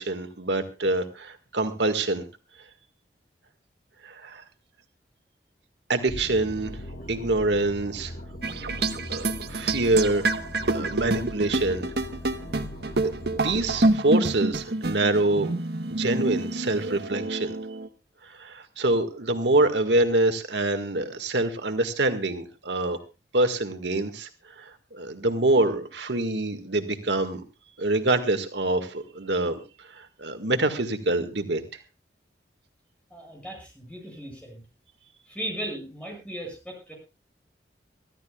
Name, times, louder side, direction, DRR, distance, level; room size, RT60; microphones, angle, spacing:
voice 1, 0.0-2.2 4.0-4.4 5.9-6.8 7.1-8.1 9.1-10.3 10.7-11.9 13.0-15.5 15.9-17.6 18.2-23.0 23.3-27.4 27.8-31.6, right 2 dB, 80° right, 8 dB, 1.8 m, -26 dB
sound 1, 6.1-13.9, equal, 50° left, 2.6 m, -39 dB
sound 2, 8.4-17.9, right 2 dB, 65° right, 1.2 m, -27 dB
voice 2, 33.1-34.6 35.3-36.9, right 1 dB, 5° left, 0 dB, 7.9 m, -37 dB
24.5 x 14.0 x 2.4 m, 0.30 s
head